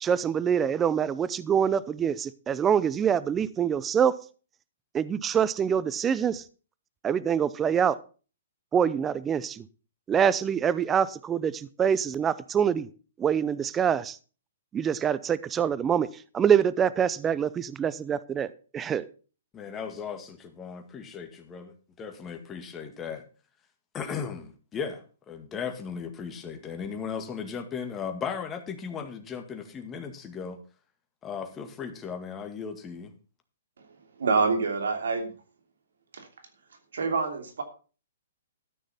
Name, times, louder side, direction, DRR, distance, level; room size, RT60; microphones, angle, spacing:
voice 1, 0.0-4.1 4.9-6.4 7.0-8.0 8.7-9.6 10.1-12.9 13.2-14.2 14.7-16.1 16.3-18.5 18.7-19.1, right 8 dB, 15° right, 17 dB, 0.6 m, -25 dB
voice 2, 19.5-23.2 23.9-30.6 31.2-33.1, left 6 dB, 20° left, 6 dB, 1.9 m, -36 dB
voice 3, 34.2-35.3 36.1-36.3 36.9-37.6, right 4 dB, 80° right, 6 dB, 2.9 m, -26 dB
13.0 x 6.3 x 5.8 m, 0.37 s
hypercardioid pair, 135°, 0 cm